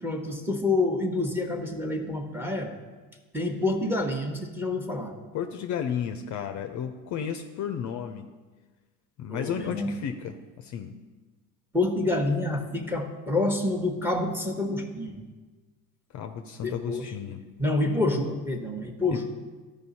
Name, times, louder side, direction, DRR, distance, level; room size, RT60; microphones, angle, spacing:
voice 1, 0.0-2.7 3.3-5.2 9.3-10.0 11.7-15.3 16.6-17.1 17.6-19.3, left 2 dB, 5° right, 4 dB, 1.1 m, -28 dB
voice 2, 5.3-8.3 9.2-10.9 16.1-17.4 19.1-19.3, left 8 dB, 40° left, 6 dB, 0.6 m, -33 dB
13.0 x 5.1 x 4.2 m, 1.3 s
hypercardioid pair, 85°, 44 cm